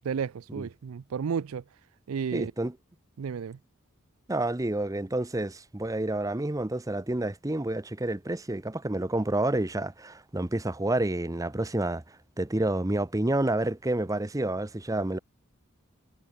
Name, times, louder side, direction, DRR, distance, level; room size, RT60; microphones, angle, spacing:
voice 1, 0.0-1.6 2.1-2.5 3.2-3.6, right 6 dB, 80° right, 0.4 m, -32 dB
voice 2, 2.3-2.7 4.3-12.0 12.4-15.2, right 1 dB, 15° right, 0.7 m, -29 dB
head